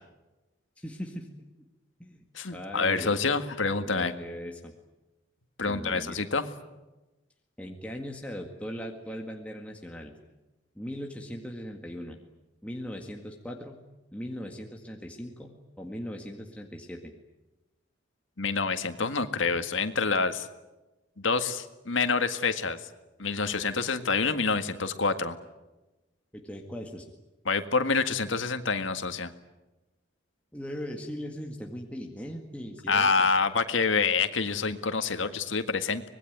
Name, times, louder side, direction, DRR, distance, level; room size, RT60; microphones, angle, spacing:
voice 1, 0.8-1.3 2.0-2.2 2.5-3.2 3.8-4.7 5.6-6.2 7.6-10.1 10.8-12.2 12.6-13.8 14.1-17.1 26.3-27.1 30.5-33.3, equal, 5° left, 1 dB, 1.8 m, -39 dB
voice 2, 2.3-4.1 5.6-6.4 18.4-20.5 21.2-22.8 23.2-25.4 27.5-29.3 32.9-36.0, left 4 dB, 85° left, 9 dB, 1.8 m, -27 dB
25.0 x 20.5 x 9.4 m, 1.1 s
head